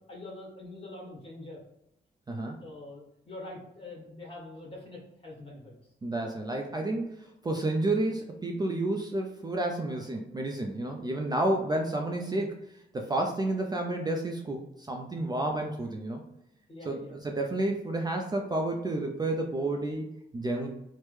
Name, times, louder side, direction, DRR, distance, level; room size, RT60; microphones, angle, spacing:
voice 1, 0.1-1.6 2.6-5.7 12.1-12.2 16.7-17.2, left 2 dB, 30° left, -3 dB, 1.3 m, -44 dB
voice 2, 2.3-2.6 6.0-12.5 12.9-16.2 16.8-20.0 20.3-20.7, right 2 dB, 20° right, 2 dB, 0.4 m, -30 dB
3.1 x 2.1 x 3.2 m, 0.85 s
cardioid pair, 80°, 18 cm